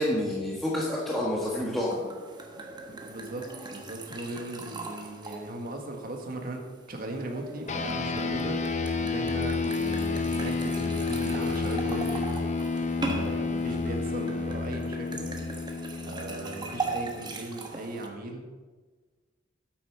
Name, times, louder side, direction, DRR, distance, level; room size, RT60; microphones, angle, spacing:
voice 1, 0.0-2.0, left 1 dB, ahead, -5 dB, 1.5 m, -28 dB
sound 1, 1.6-18.1, right 3 dB, 20° right, 1.1 m, -40 dB
voice 2, 2.9-12.5 13.0-15.3 16.0-18.5, right 2 dB, 50° right, 3 dB, 1.6 m, -38 dB
sound 2, 7.7-17.4, left 4 dB, 35° left, 0.7 m, -30 dB
8.9 x 8.4 x 5.9 m, 1.4 s
head